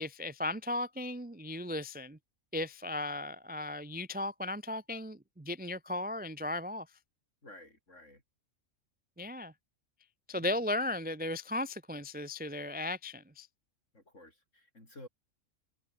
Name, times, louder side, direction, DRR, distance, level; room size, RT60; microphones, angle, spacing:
voice 1, 0.0-2.2 2.5-6.9 9.2-9.5 10.3-13.5, left 2 dB, 10° right, 0.4 m, -36 dB
voice 2, 7.4-8.2 10.3-10.6 13.9-15.1, left 1 dB, 65° left, 8.1 m, -53 dB
omnidirectional pair, 1.4 m